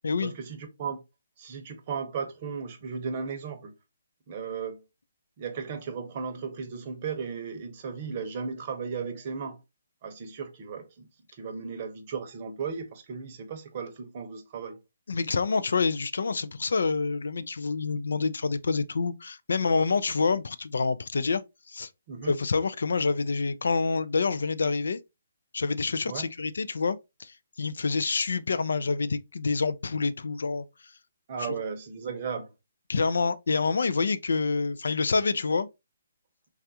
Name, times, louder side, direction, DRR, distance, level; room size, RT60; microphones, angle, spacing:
voice 1, 0.2-1.0 1.4-3.7 4.3-4.8 5.4-9.6 10.0-14.8 22.1-22.3 26.1-26.2 31.3-32.5, right 6 dB, 35° right, 0.7 m, -35 dB
voice 2, 15.1-21.4 21.7-21.9 22.2-25.0 25.5-30.6 32.9-35.7, left 4 dB, 80° left, 0.3 m, -27 dB
3.4 x 2.3 x 2.7 m
hypercardioid pair, 160°, 0 cm